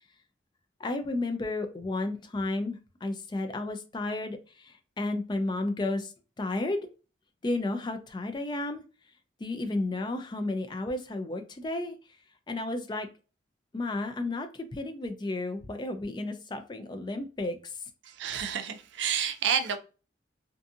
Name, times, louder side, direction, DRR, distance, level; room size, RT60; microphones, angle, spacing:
voice 1, 0.8-6.1 6.4-6.8 7.4-8.8 9.4-11.9 12.5-13.1 13.7-17.8, left 2 dB, 25° left, 0.3 m, -32 dB
voice 2, 18.0-19.8, right 7 dB, 85° right, 0.4 m, -29 dB
2.5 x 2.4 x 2.6 m
head